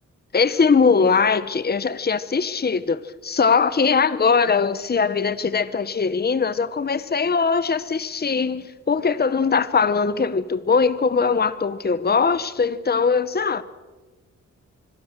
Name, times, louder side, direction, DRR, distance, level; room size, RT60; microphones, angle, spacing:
voice 1, 0.3-13.6, left 5 dB, 30° left, 1.0 m, -21 dB
25.5 x 22.5 x 6.7 m
cardioid pair, 80°, 30 cm